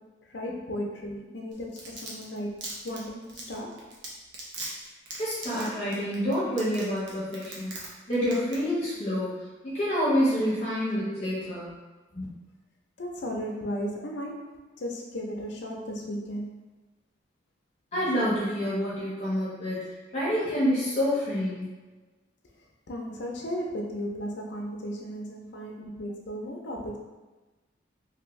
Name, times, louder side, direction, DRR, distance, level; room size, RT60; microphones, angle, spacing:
voice 1, 0.2-3.8 13.0-14.5 14.8-16.6 22.9-27.0, equal, 65° left, 0 dB, 0.5 m, -35 dB
Domestic sounds home sounds, 1.5-7.9 8.1-8.6 8.9-9.0, right 2 dB, 65° right, 0.7 m, -38 dB
voice 2, 5.2-7.7 8.1-9.4 9.6-11.7 12.1-12.2 17.9-19.8 20.1-21.7, equal, 35° left, -9 dB, 0.8 m, -27 dB
2.7 x 2.6 x 3.0 m, 1.2 s
head